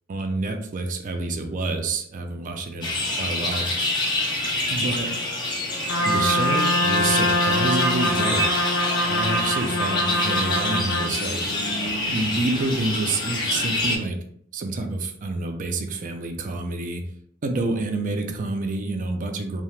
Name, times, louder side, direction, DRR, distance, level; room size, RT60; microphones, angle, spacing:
voice 1, 0.1-2.9 3.2-3.7 4.7-5.1 6.1-8.5 9.1-11.4 12.1-14.2 14.5-17.0 17.4-19.6, right 2 dB, 40° right, 4 dB, 0.4 m, -28 dB
sound 1, 2.8-14.0, left 1 dB, 20° left, 0.5 m, -26 dB
Trumpet, 5.9-11.2, left 1 dB, 80° left, 0.6 m, -24 dB
2.8 x 2.1 x 3.1 m, 0.66 s
head